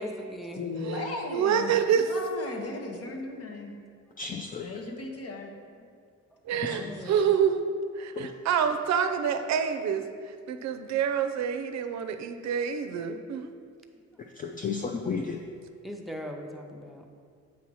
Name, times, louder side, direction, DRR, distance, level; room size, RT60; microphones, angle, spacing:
voice 1, 0.0-0.6 6.6-7.2 15.8-17.0, equal, ahead, 2 dB, 0.7 m, -39 dB
voice 2, 0.5-3.7 4.6-5.5 6.5-6.9, left 3 dB, 50° left, 2 dB, 1.1 m, -36 dB
voice 3, 1.3-2.1 6.4-13.5, right 7 dB, 65° right, 8 dB, 0.5 m, -27 dB
voice 4, 4.2-4.7 6.6-6.8 8.1-8.3 14.2-15.4, left 5 dB, 30° left, 3 dB, 0.4 m, -33 dB
8.4 x 2.8 x 6.2 m, 2.2 s
cardioid pair, 90°, 30 cm